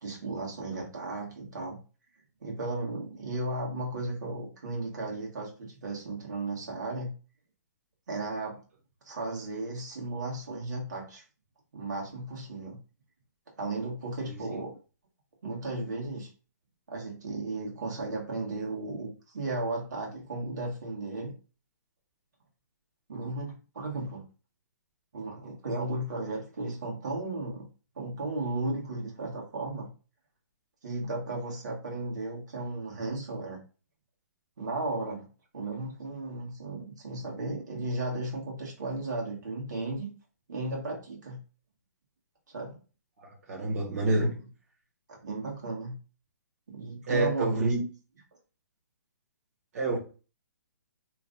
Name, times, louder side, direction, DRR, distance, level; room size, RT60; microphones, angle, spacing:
voice 1, 0.0-1.8 2.4-7.1 8.1-8.6 9.0-11.2 11.7-12.8 13.6-14.8 15.4-16.3 16.9-21.3 23.1-24.2 25.1-27.7 27.9-29.9 30.8-33.6 34.6-35.3 35.5-40.1 40.5-41.4 42.5-42.8 43.9-44.4 45.1-46.0 46.7-47.7, right 2 dB, 80° right, 1.5 m, -35 dB
voice 2, 43.2-44.3 47.1-47.8 49.7-50.0, right 2 dB, 55° right, 1.4 m, -27 dB
3.1 x 2.5 x 3.7 m
hypercardioid pair, 160°, 9 cm